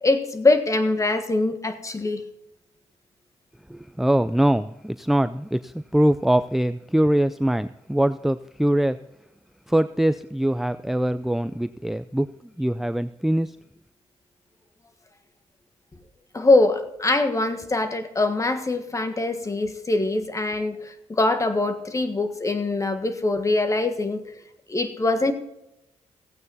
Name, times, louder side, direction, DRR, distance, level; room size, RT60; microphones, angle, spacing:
voice 1, 0.0-2.2 16.3-24.2 24.7-25.3, left 2 dB, 25° left, 8 dB, 1.6 m, -23 dB
voice 2, 3.7-9.1 9.7-13.6, right 1 dB, ahead, 12 dB, 0.4 m, -23 dB
16.0 x 8.8 x 4.1 m, 0.85 s
cardioid pair, 90°, 12 cm